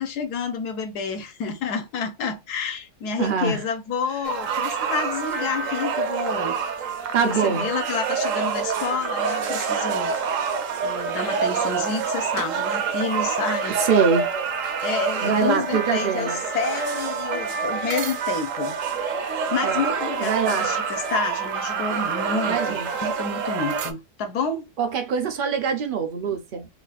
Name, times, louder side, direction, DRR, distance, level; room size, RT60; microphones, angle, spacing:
voice 1, 0.0-6.6 7.2-10.5 10.8-13.8 14.8-18.8 19.0-24.7, left 5 dB, 75° left, 1.4 m, -29 dB
voice 2, 3.2-3.7 7.1-7.7 13.7-14.3 15.2-16.4 19.6-19.8 20.2-20.7 22.5-22.9 24.8-26.7, right 6 dB, 80° right, 0.4 m, -24 dB
sound 1, 4.2-23.9, right 6 dB, 65° right, 0.8 m, -27 dB
3.2 x 2.4 x 3.9 m
omnidirectional pair, 1.7 m